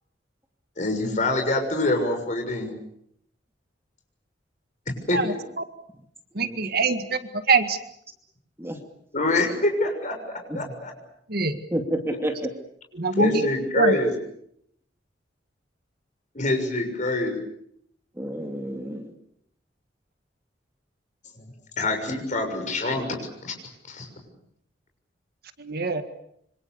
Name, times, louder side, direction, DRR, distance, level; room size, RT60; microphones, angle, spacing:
voice 1, 0.8-2.7 5.1-5.4 9.1-10.9 12.1-12.2 13.2-14.1 16.3-17.4 21.3-21.5 21.8-23.6 23.9-24.1, left 2 dB, 45° left, 4 dB, 6.6 m, -25 dB
voice 2, 6.3-7.2 7.5-7.8 11.3-11.6 12.9-13.4 13.7-14.0 25.6-26.0, right 4 dB, 55° right, 9 dB, 1.8 m, -23 dB
voice 3, 11.7-12.5 18.2-19.1, right 1 dB, 15° right, 4 dB, 2.5 m, -29 dB
27.0 x 25.5 x 6.9 m, 0.72 s
head